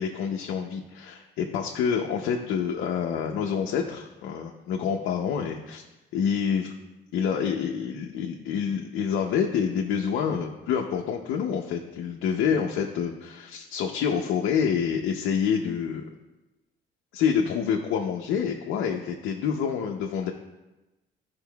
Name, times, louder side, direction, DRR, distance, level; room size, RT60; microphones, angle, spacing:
voice 1, 0.0-5.8 6.1-6.8 7.1-16.0 17.1-20.3, left 7 dB, 90° left, 1 dB, 0.7 m, -27 dB
12.5 x 5.4 x 2.3 m, 1.0 s
cardioid pair, 90°, 20 cm